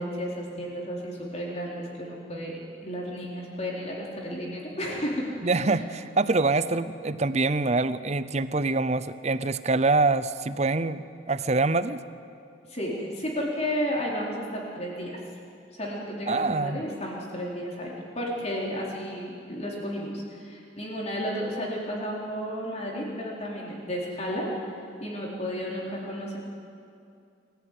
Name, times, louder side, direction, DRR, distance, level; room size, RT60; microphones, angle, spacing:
voice 1, 0.0-5.8 12.7-15.2 15.7-24.5 25.0-26.4, equal, 35° left, -3 dB, 4.5 m, -33 dB
voice 2, 5.4-12.0 16.3-16.8, right 3 dB, 35° right, 14 dB, 0.7 m, -25 dB
24.0 x 15.0 x 9.5 m, 2.5 s
head